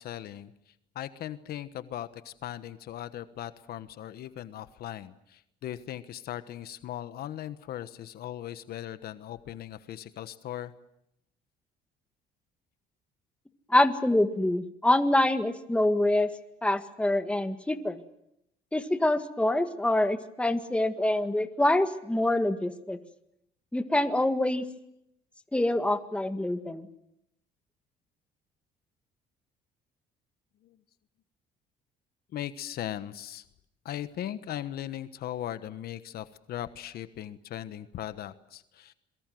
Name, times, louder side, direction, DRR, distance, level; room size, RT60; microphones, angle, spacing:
voice 1, 0.0-10.7 30.6-30.8 32.3-33.4 33.8-38.9, left 12 dB, 65° left, 13 dB, 1.3 m, -39 dB
voice 2, 13.7-16.3 16.6-18.0 18.7-23.0 23.7-24.6 25.5-26.9, left 1 dB, 5° left, 8 dB, 1.8 m, -25 dB
26.5 x 23.0 x 7.8 m, 0.78 s
cardioid pair, 110°, 17 cm